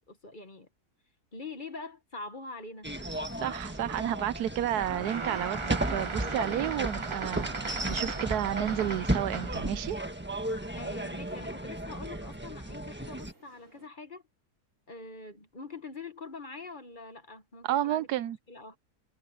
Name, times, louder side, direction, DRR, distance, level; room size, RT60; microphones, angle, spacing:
voice 1, 0.1-0.7 1.3-2.9 10.7-14.2 14.9-18.1 18.5-18.8, left 3 dB, 35° left, 1.4 m, -44 dB
sound 1, 2.8-13.3, right 1 dB, 5° right, 1.3 m, -35 dB
voice 2, 3.4-10.0 17.6-18.4, right 12 dB, 80° right, 1.2 m, -31 dB
sound 2, 4.7-9.7, right 4 dB, 25° right, 0.7 m, -37 dB
sound 3, 6.0-13.9, right 3 dB, 50° right, 3.9 m, -60 dB
omnidirectional pair, 1.7 m